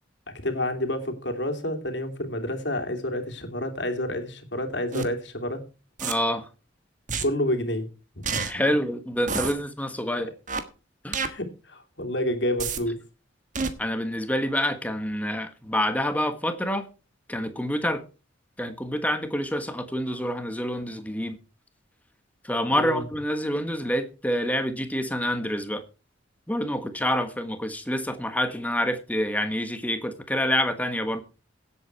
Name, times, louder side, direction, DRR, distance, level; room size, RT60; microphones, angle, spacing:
voice 1, 0.4-5.6 7.2-7.9 8.3-8.4 11.1-13.0 22.7-23.0, left 1 dB, 60° left, 5 dB, 2.9 m, -29 dB
sound 1, 4.9-5.0 6.0-6.1 7.1-7.2 8.2-8.5 9.3-9.5 10.5-10.6 11.1-11.3 12.6-12.8 13.6-13.7, right 5 dB, 40° right, 1.4 m, -28 dB
voice 2, 6.0-6.5 8.4-10.3 11.0-11.2 13.8-16.9 17.3-18.0 18.6-21.4 22.4-25.8 26.5-31.2, equal, 10° left, 8 dB, 1.5 m, -27 dB
17.0 x 8.4 x 4.7 m, 0.33 s
head